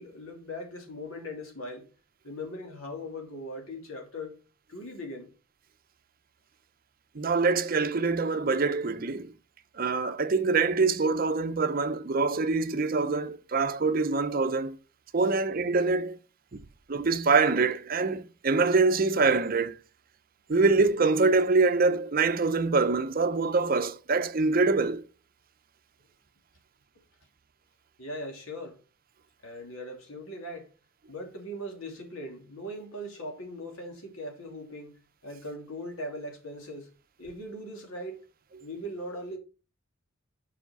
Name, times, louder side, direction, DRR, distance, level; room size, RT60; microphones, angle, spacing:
voice 1, 0.0-1.9 2.2-4.4 4.7-5.3 15.2-15.3 28.0-28.8 29.4-30.7 31.1-36.9 37.2-38.2 38.6-39.4, left 1 dB, 80° left, 2.7 m, -40 dB
voice 2, 7.1-9.3 9.8-14.8 15.1-16.2 16.9-19.8 20.5-25.0, right 4 dB, 45° right, 0.6 m, -25 dB
7.1 x 5.0 x 5.7 m
head